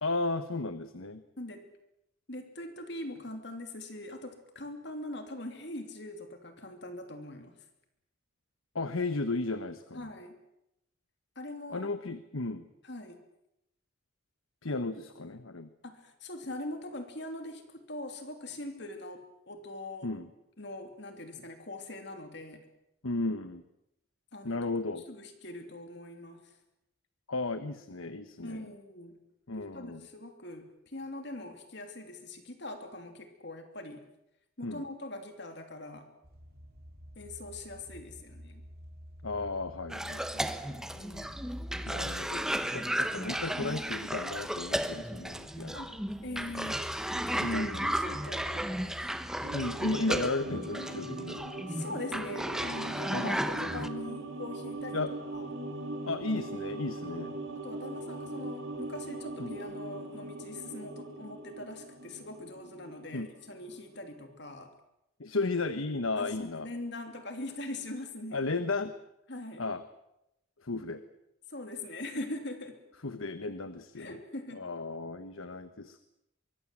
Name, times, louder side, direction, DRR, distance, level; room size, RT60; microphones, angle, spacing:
voice 1, 0.0-1.2 8.7-10.1 11.7-12.6 14.6-15.7 20.0-20.3 23.0-23.6 24.4-25.1 27.3-28.7 29.5-30.1 34.6-34.8 39.2-40.5 41.9-45.8 47.4-47.9 49.5-51.4 53.1-53.4 54.9-55.1 56.1-57.4 59.4-59.5 63.1-63.3 65.2-66.7 68.3-68.9 69.6-69.8 70.6-71.0 73.0-74.2 74.5-76.0, left 3 dB, 85° left, 11 dB, 1.3 m, -34 dB
voice 2, 2.3-7.5 9.9-10.3 11.4-11.9 12.8-13.2 15.8-20.1 20.6-22.6 24.3-24.6 25.1-26.5 28.4-29.2 29.5-34.0 34.6-36.1 37.2-38.6 40.7-41.3 45.7-46.0 46.2-49.0 51.7-55.0 55.3-55.5 57.5-64.7 66.2-68.4 69.3-69.6 71.5-72.8 74.0-74.7, left 1 dB, 55° left, 6 dB, 2.9 m, -42 dB
sound 1, 36.2-49.9, equal, 50° right, 4.9 m, -48 dB
Cough, 39.9-53.9, equal, 5° right, 1.1 m, -34 dB
sound 2, 49.4-64.0 64.3-64.4, right 2 dB, 75° right, 5.3 m, -41 dB
24.0 x 23.5 x 7.6 m, 0.85 s
head